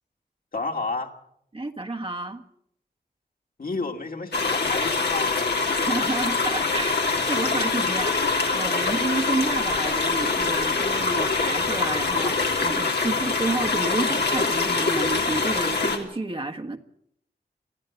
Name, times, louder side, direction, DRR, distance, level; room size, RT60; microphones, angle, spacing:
voice 1, 0.5-1.1 3.6-5.3 7.7-8.0, left 3 dB, 60° left, 2.5 m, -31 dB
voice 2, 1.5-2.4 5.7-16.8, right 2 dB, 35° right, 1.5 m, -30 dB
sound 1, 4.3-16.0, left 4 dB, 85° left, 3.0 m, -24 dB
24.5 x 15.5 x 7.1 m
wide cardioid pair, 90°, 17 cm